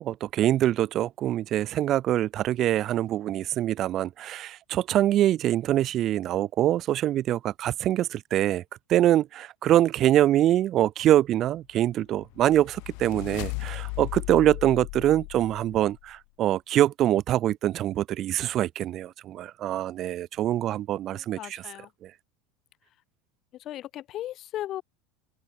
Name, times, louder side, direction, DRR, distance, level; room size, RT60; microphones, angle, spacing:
voice 1, 0.0-8.6 8.9-21.6 22.0-22.1, right 12 dB, 45° right, 0.5 m, -24 dB
sound 1, 11.9-16.1, left 40 dB or more, 65° left, 2.1 m, -37 dB
voice 2, 21.1-21.9 23.5-24.8, left 13 dB, 45° left, 6.6 m, -37 dB
hypercardioid pair, 90°, 0 cm